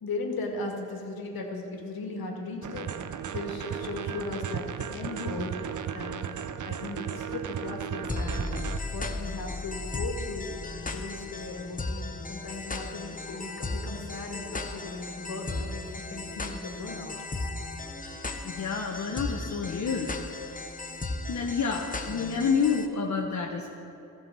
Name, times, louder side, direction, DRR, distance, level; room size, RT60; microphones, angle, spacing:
voice 1, 0.0-2.9 3.3-6.2 6.6-8.5 8.9-10.5 10.9-17.2, left 3 dB, 60° left, 1 dB, 2.0 m, -37 dB
sound 1, 2.6-8.8, right 8 dB, 50° right, 0.7 m, -35 dB
sound 2, 8.1-22.9, left 2 dB, 20° left, 0.9 m, -36 dB
voice 2, 18.4-20.1 21.3-23.7, left 5 dB, 45° left, 0 dB, 1.0 m, -29 dB
14.5 x 4.9 x 6.2 m, 3.0 s
hypercardioid pair, 45°, 41 cm